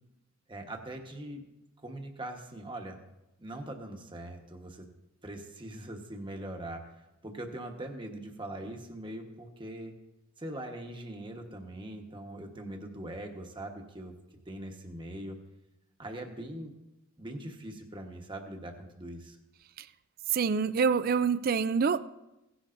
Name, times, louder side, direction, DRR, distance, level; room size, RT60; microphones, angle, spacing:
voice 1, 0.5-1.4 1.8-3.0 3.4-4.9 5.2-6.9 7.2-9.9 10.4-14.1 14.5-15.4 16.0-16.7 17.2-19.4, right 1 dB, 25° right, 3 dB, 1.1 m, -41 dB
voice 2, 20.3-22.0, right 6 dB, 45° right, 16 dB, 0.4 m, -26 dB
17.5 x 10.0 x 2.6 m, 0.95 s
head